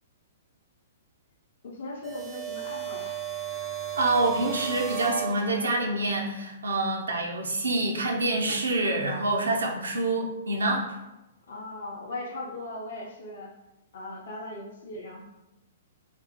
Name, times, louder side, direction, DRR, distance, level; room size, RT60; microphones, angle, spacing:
voice 1, 1.6-3.1 11.5-13.5 13.9-15.3, left 2 dB, 60° left, -2 dB, 0.5 m, -38 dB
sound 1, 2.0-5.9, right 11 dB, 15° right, 0.4 m, -35 dB
voice 2, 4.0-10.9, right 2 dB, 75° right, 1 dB, 0.5 m, -26 dB
3.3 x 2.0 x 2.8 m, 0.96 s
figure-of-eight pair, 115°, 0 cm